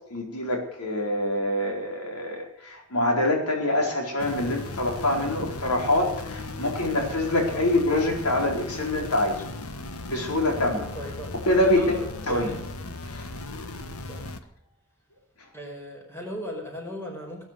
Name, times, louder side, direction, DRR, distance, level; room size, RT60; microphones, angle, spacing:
voice 1, 0.1-9.4 10.1-10.9 11.5-11.9 12.3-12.5 13.1-13.3, left 1 dB, 85° left, 1 dB, 4.5 m, -25 dB
sound 1, 4.2-14.4, left 2 dB, 70° left, 1.5 m, -37 dB
voice 2, 10.9-11.3 11.6-12.6 14.0-14.2 15.5-17.5, equal, 10° left, 1 dB, 5.1 m, -37 dB
18.5 x 10.0 x 6.7 m, 0.80 s
head